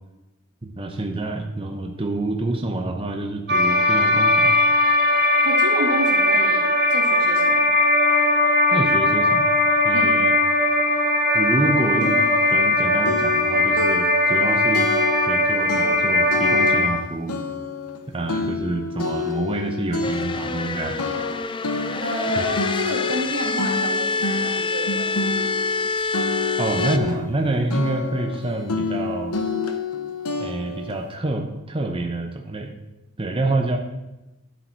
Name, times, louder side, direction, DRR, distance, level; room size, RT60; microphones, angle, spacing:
voice 1, 0.6-4.6 8.7-9.6 9.8-10.3 11.3-14.9 15.3-17.3 18.1-21.1 26.6-29.4 30.4-32.7 33.2-33.8, right 2 dB, 25° right, 3 dB, 0.8 m, -27 dB
sound 1, 3.5-16.9, left 1 dB, 45° right, 1.4 m, -19 dB
voice 2, 5.4-7.7 9.9-10.2 22.0-25.6, equal, 90° right, -1 dB, 2.6 m, -29 dB
sound 2, 11.4-11.5 12.0-12.8 13.0-15.4 15.7-17.0 17.3-20.7 21.0-25.9 26.1-27.4 27.7-31.0, left 4 dB, 80° left, 0.9 m, -29 dB
sound 3, 20.0-27.0, left 3 dB, 20° left, 0.4 m, -26 dB
11.0 x 7.7 x 4.5 m, 0.98 s
head